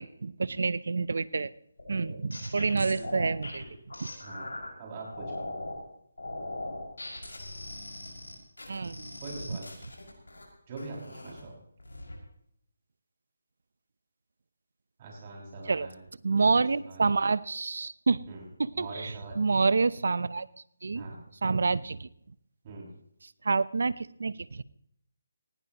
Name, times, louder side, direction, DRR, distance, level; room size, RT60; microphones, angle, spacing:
voice 1, 0.0-1.5 1.9-3.6 4.0-4.1 8.7-9.0 9.5-9.6 15.7-15.9 16.2-18.2 18.6-20.5 20.8-21.0 21.4-22.1 23.4-24.6, right 4 dB, 65° right, 19 dB, 0.7 m, -28 dB
sound 1, 1.8-4.7 5.1-5.8 6.2-10.4 10.8-11.4 11.8-12.2, left 2 dB, 85° left, 6.2 m, -40 dB
voice 2, 2.9-3.3 4.2-5.5 9.2-9.9 10.7-11.6 15.0-17.0 18.3-18.5 18.7-19.4 20.9-21.2 22.6-22.9, right 3 dB, 30° right, -2 dB, 6.3 m, -43 dB
19.0 x 17.5 x 3.0 m, 0.71 s
figure-of-eight pair, 160°, 0 cm